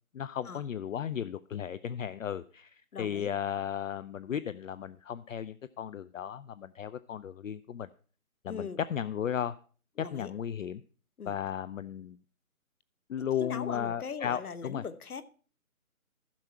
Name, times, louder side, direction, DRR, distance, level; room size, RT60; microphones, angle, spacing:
voice 1, 0.1-7.9 8.4-9.6 10.0-10.8 11.2-12.2 13.1-14.8, left 9 dB, 65° left, 0.5 m, -35 dB
voice 2, 2.9-3.3 8.5-8.8 10.0-10.3 11.2-11.4 13.2-15.2, left 6 dB, 85° left, 1.1 m, -40 dB
14.5 x 6.1 x 4.5 m
hypercardioid pair, 165°, 43 cm